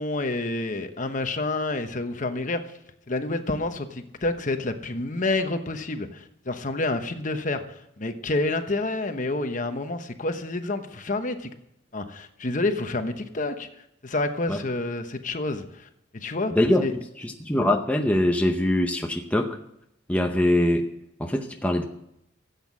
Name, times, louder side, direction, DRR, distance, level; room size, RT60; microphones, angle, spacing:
voice 1, 0.0-2.6 3.1-11.5 11.9-13.7 14.0-16.5 16.8-16.9, left 2 dB, 40° left, 8 dB, 1.0 m, -28 dB
voice 2, 16.5-19.6 20.1-20.9 21.2-21.8, left 1 dB, 5° left, 3 dB, 0.7 m, -23 dB
15.0 x 8.3 x 7.4 m, 0.79 s
head